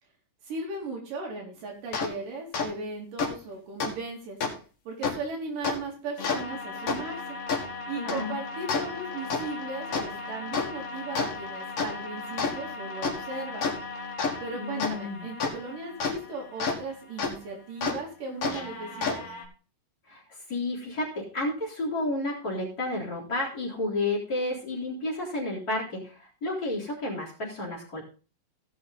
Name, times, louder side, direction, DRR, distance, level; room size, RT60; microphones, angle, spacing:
voice 1, 0.4-4.4 4.9-7.4 7.9-13.7 14.4-19.2, right 3 dB, 70° right, 0 dB, 4.0 m, -37 dB
sound 1, 1.9-2.1 2.5-2.7 3.2-3.3 3.8-3.9 4.4-4.5 5.0-5.1 5.6-5.7 6.2-16.8 17.2-17.3 17.8-17.9 18.4-19.4, left 4 dB, 45° left, 2.6 m, -32 dB
voice 2, 8.0-8.3 14.5-15.3 20.1-28.0, left 2 dB, 25° left, -4 dB, 3.7 m, -31 dB
17.5 x 5.9 x 3.9 m, 0.35 s
omnidirectional pair, 3.9 m